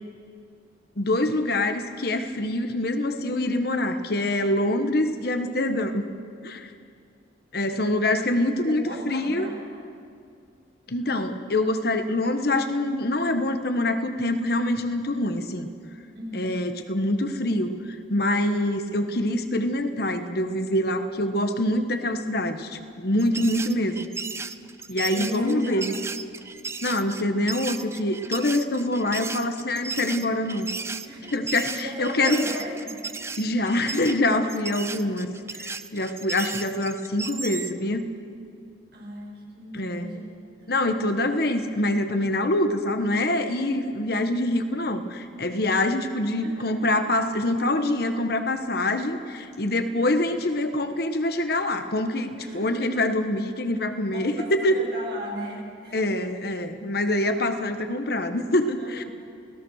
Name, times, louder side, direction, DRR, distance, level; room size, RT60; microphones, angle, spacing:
voice 1, 1.0-6.1 6.4-6.7 7.5-9.5 10.9-15.7 16.3-24.1 24.9-26.0 26.8-30.7 31.3-32.5 33.4-38.1 39.7-40.1 40.7-54.8 55.9-59.0, left 1 dB, 60° left, 8 dB, 1.4 m, -25 dB
voice 2, 8.4-9.7 16.1-16.5 23.1-23.5 25.1-26.0 31.1-31.4 31.8-33.0 38.9-40.3 46.3-46.7 52.4-52.7 54.1-56.1 58.8-59.1, right 1 dB, 60° right, -3 dB, 7.0 m, -37 dB
sound 1, 23.2-37.8, right 4 dB, 15° right, 0.5 m, -35 dB
29.0 x 17.5 x 6.5 m, 2.3 s
head